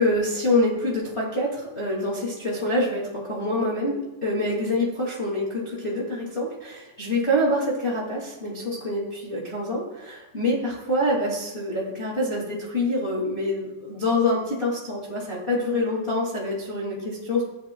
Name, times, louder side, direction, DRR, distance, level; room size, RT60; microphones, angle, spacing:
voice 1, 0.0-17.4, left 1 dB, 55° left, -5 dB, 0.7 m, -26 dB
15.5 x 10.0 x 2.2 m, 1.1 s
omnidirectional pair, 4.8 m